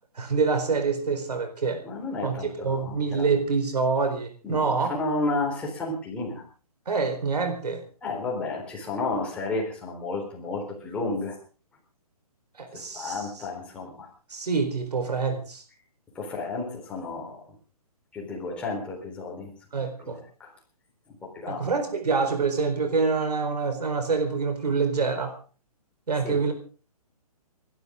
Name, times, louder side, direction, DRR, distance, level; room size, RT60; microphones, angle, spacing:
voice 1, 0.1-1.8 2.2-4.9 6.9-7.8 12.6-13.4 14.3-15.6 19.7-20.2 21.5-25.3 26.1-26.5, right 4 dB, 90° right, 6 dB, 4.3 m, -26 dB
voice 2, 1.8-3.3 4.4-6.4 8.0-11.4 12.7-14.1 16.2-17.4 18.1-19.5 20.0-20.1 20.4-20.5 21.2-21.7 26.2-26.4, left 3 dB, 5° left, -3 dB, 4.0 m, -32 dB
29.0 x 12.0 x 3.8 m, 0.37 s
hypercardioid pair, 170°, 20 cm